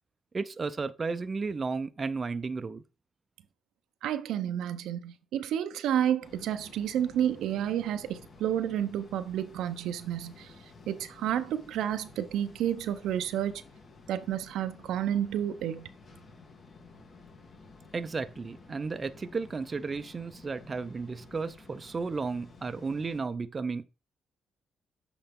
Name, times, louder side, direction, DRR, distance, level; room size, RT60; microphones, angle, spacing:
voice 1, 0.3-2.8 17.9-23.8, right 4 dB, 30° right, 0.5 m, -33 dB
voice 2, 4.0-10.5 10.9-13.6 14.1-15.9, right 10 dB, 85° right, 0.6 m, -30 dB
sound 1, 6.2-23.2, left 3 dB, 50° left, 1.7 m, -53 dB
7.9 x 3.9 x 3.6 m
cardioid pair, 90°, 0 cm